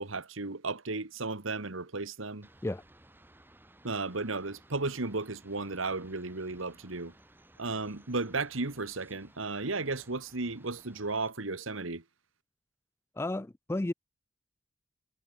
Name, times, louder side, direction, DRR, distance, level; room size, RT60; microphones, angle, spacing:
voice 1, 0.0-2.5 3.8-7.1 7.6-12.0, right 3 dB, 85° right, 1.8 m, -34 dB
sound 1, 2.4-11.3, right 1 dB, 10° right, 3.2 m, -59 dB
voice 2, 13.2-13.9, left 2 dB, 10° left, 0.3 m, -32 dB
head